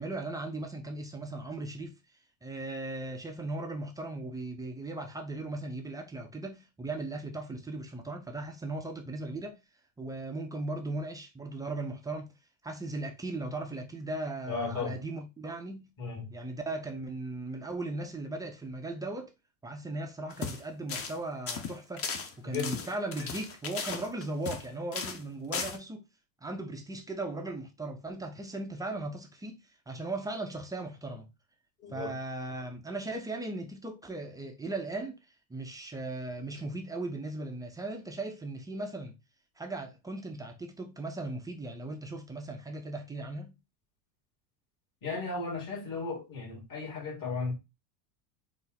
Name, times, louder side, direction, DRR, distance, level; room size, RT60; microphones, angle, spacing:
voice 1, 0.0-2.0 2.4-9.6 10.0-12.3 12.6-15.9 16.3-19.3 19.6-22.1 22.4-26.1 26.4-31.3 31.9-35.1 35.5-39.2 39.6-43.6, right 2 dB, 10° right, 0.3 m, -37 dB
voice 2, 14.5-15.0 16.0-16.3 22.4-22.8 31.8-32.2 45.0-47.5, left 4 dB, 45° left, 2.2 m, -35 dB
sound 1, 20.3-20.6 20.9-21.2 21.5-24.6 24.9-25.2 25.5-25.8, left 5 dB, 30° left, 0.7 m, -36 dB
4.0 x 2.5 x 3.8 m
supercardioid pair, 115°, 47 cm